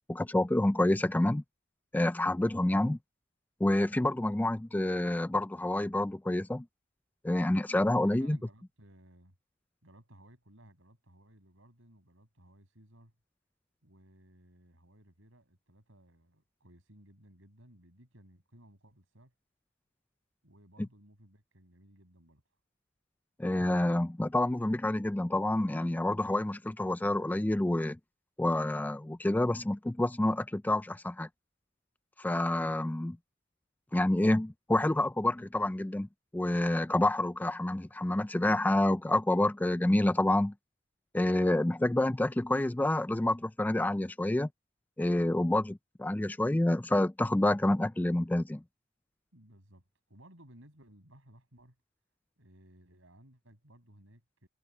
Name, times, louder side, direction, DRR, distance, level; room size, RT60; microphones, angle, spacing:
voice 1, 0.1-1.4 1.9-3.0 3.6-6.7 7.2-8.4 23.4-28.0 28.4-31.3 32.2-33.2 33.9-36.1 36.3-40.5 41.1-44.5 45.0-48.6, left 1 dB, 10° left, 0.3 m, -28 dB
voice 2, 8.0-9.4 9.8-13.1 13.8-19.3 20.4-22.4 49.3-51.8 52.4-54.5, right 1 dB, 75° right, 7.7 m, -59 dB
head